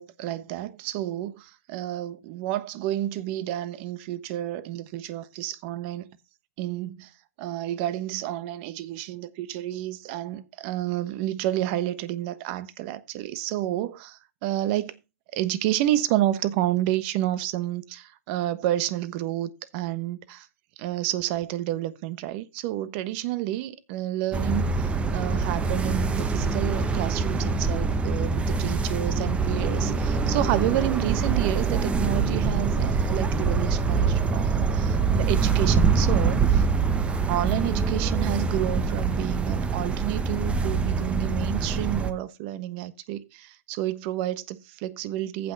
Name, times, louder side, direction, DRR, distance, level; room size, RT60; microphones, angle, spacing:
voice 1, 0.0-6.1 6.6-7.1 7.4-14.9 15.3-20.4 20.8-36.7 37.3-45.5, right 13 dB, 40° right, 1.1 m, -30 dB
sound 1, 24.3-42.1, right 4 dB, 15° right, 0.9 m, -24 dB
15.0 x 6.0 x 4.1 m
hypercardioid pair, 125°, 9 cm